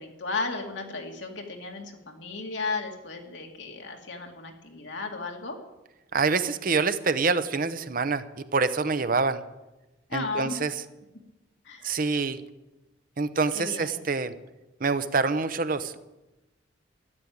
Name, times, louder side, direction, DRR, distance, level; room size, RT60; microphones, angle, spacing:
voice 1, 0.0-5.6 10.1-10.6 11.6-11.9 13.5-14.0, left 3 dB, 75° left, 2 dB, 2.5 m, -34 dB
voice 2, 6.1-9.4 10.1-10.7 11.8-12.4 13.2-14.3 14.8-16.0, right 4 dB, 50° right, 12 dB, 0.8 m, -26 dB
13.0 x 10.5 x 8.6 m, 1.0 s
head